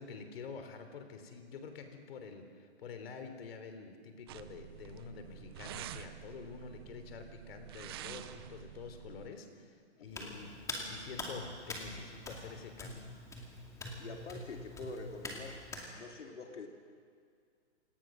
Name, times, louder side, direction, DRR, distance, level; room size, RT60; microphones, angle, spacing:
voice 1, 0.0-13.1, left 5 dB, 55° left, 7 dB, 3.5 m, -48 dB
sound 1, 4.3-9.3, right 12 dB, 20° right, 0.5 m, -48 dB
Hands, 10.1-15.9, left 2 dB, 10° left, 2.4 m, -44 dB
voice 2, 14.0-15.6 15.9-16.7, left 3 dB, 80° left, 3 dB, 2.7 m, -45 dB
27.5 x 18.5 x 6.3 m, 2.2 s
hypercardioid pair, 150°, 35 cm